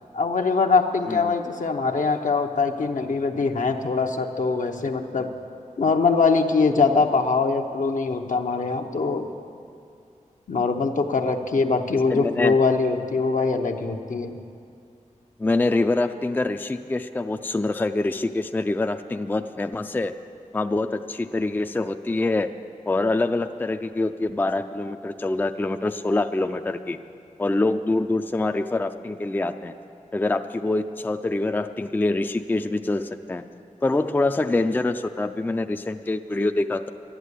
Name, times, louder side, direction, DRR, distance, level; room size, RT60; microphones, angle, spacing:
voice 1, 0.1-5.3 5.8-9.3 10.5-14.4, left 4 dB, 70° left, 4 dB, 0.9 m, -22 dB
voice 2, 12.1-12.6 15.4-20.1 20.5-22.5 22.9-27.0 27.4-29.7 30.1-33.4 33.8-36.9, left 2 dB, 15° left, 8 dB, 0.4 m, -25 dB
11.0 x 11.0 x 8.3 m, 2.4 s
wide cardioid pair, 85°, 14 cm